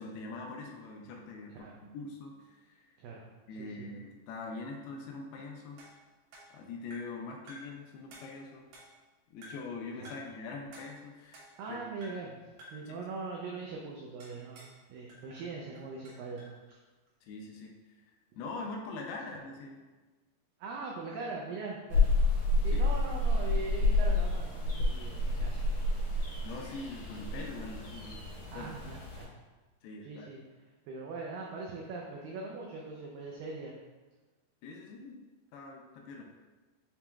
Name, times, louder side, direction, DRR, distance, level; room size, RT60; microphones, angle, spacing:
voice 1, 0.0-2.9 3.5-5.9 6.5-8.7 9.3-11.8 12.9-13.0 17.2-17.8 18.4-19.8 22.7-22.9 26.4-28.3 28.5-28.7 29.8-30.3 34.6-35.2 35.5-36.3, left 3 dB, 85° left, 1 dB, 2.4 m, -43 dB
voice 2, 3.6-3.9 10.0-10.2 11.6-12.4 12.7-16.8 20.6-22.1 22.6-25.6 28.5-29.3 30.0-30.4 30.9-33.8, right 3 dB, 90° right, -2 dB, 1.9 m, -41 dB
sound 1, 5.8-7.2 7.5-7.8 8.1-9.1 9.4-9.8 10.0-10.4 10.7-11.7 12.0-12.3 12.6-12.9 14.2-14.8 15.1-16.6, equal, 75° right, 2.9 m, -53 dB
sound 2, 21.9-29.2, left 2 dB, 65° left, 1.7 m, -29 dB
7.1 x 2.9 x 2.2 m, 1.2 s
omnidirectional pair, 4.5 m